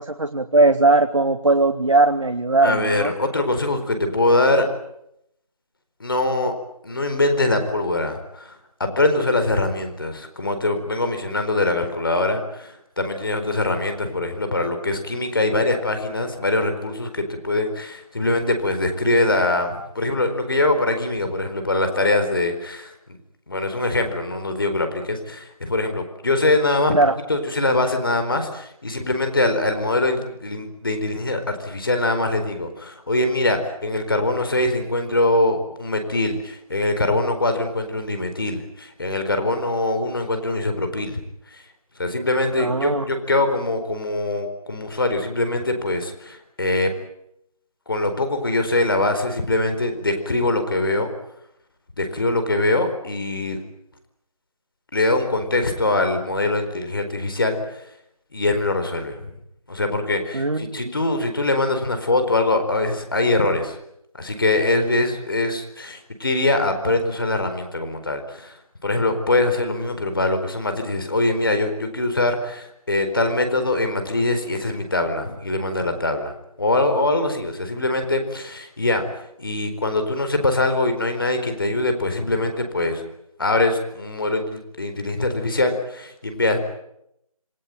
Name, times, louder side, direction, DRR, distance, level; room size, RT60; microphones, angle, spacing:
voice 1, 0.0-3.1 26.9-27.1 42.6-43.1 60.3-60.9, right 2 dB, 55° right, 7 dB, 1.9 m, -19 dB
voice 2, 2.6-4.7 6.0-6.5 6.8-8.5 8.8-22.9 23.5-27.0 27.3-41.2 41.5-41.6 42.0-46.9 47.9-51.1 52.0-53.6 54.9-57.6 58.3-59.3 59.7-63.8 64.2-68.5 68.8-76.3 76.6-79.0 79.4-83.0 83.4-86.6, left 2 dB, 40° left, 7 dB, 4.4 m, -23 dB
28.0 x 20.0 x 9.3 m, 0.79 s
figure-of-eight pair, 170°, 19 cm